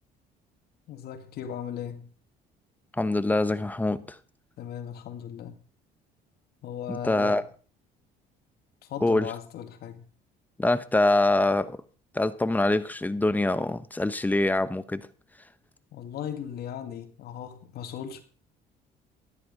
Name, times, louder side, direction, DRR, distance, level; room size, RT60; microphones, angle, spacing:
voice 1, 0.9-2.1 4.6-5.6 6.6-7.5 8.8-10.1 15.9-18.2, left 9 dB, 70° left, 2.0 m, -37 dB
voice 2, 3.0-4.2 6.9-7.4 9.0-9.3 10.6-11.8 12.1-15.1, left 2 dB, 10° left, 0.9 m, -24 dB
13.5 x 10.5 x 5.2 m
cardioid pair, 110°, 17 cm